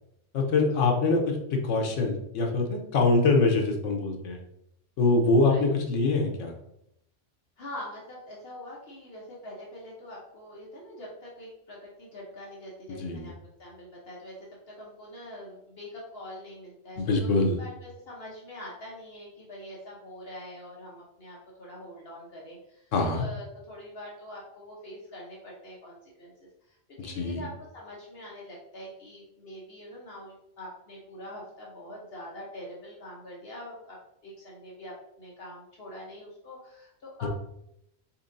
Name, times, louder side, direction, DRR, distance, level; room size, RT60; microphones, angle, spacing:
voice 1, 0.3-4.4 5.0-6.5 13.0-13.3 17.0-17.6 22.9-23.2 27.2-27.4 37.2-37.3, left 3 dB, 80° left, 2 dB, 1.1 m, -24 dB
voice 2, 7.6-13.3 13.6-14.5 14.7-26.3 26.6-34.0 34.2-37.3, left 1 dB, 55° left, -4 dB, 1.1 m, -44 dB
4.3 x 3.6 x 2.6 m, 0.79 s
omnidirectional pair, 1.3 m